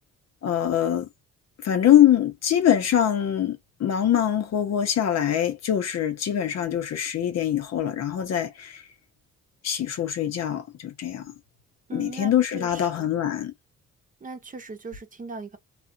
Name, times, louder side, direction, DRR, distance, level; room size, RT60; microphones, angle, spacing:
voice 1, 0.4-1.1 1.6-8.8 9.6-11.3 11.9-13.5, left 10 dB, 60° left, 0.8 m, -23 dB
voice 2, 11.9-13.1 14.2-15.6, right 3 dB, 25° right, 0.8 m, -39 dB
2.4 x 2.4 x 2.7 m
cardioid pair, 90°, 30 cm